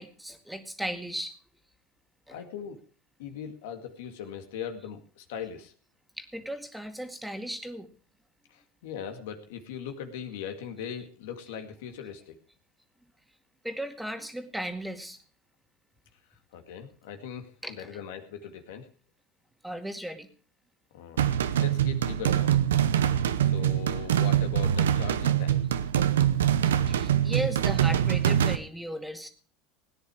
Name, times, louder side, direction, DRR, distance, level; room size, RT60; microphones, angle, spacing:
voice 1, 0.0-1.3 2.3-2.4 6.2-7.9 13.6-15.2 17.6-17.7 19.6-20.3 26.6-29.3, right 1 dB, 5° right, 6 dB, 2.1 m, -36 dB
voice 2, 2.3-2.8 3.2-5.7 8.5-12.4 16.5-18.9 20.9-22.5 23.4-25.6, left 8 dB, 75° left, 6 dB, 2.0 m, -40 dB
sound 1, 21.2-28.6, right 10 dB, 85° right, 0.8 m, -24 dB
17.5 x 9.8 x 4.8 m, 0.39 s
hypercardioid pair, 90°, 0 cm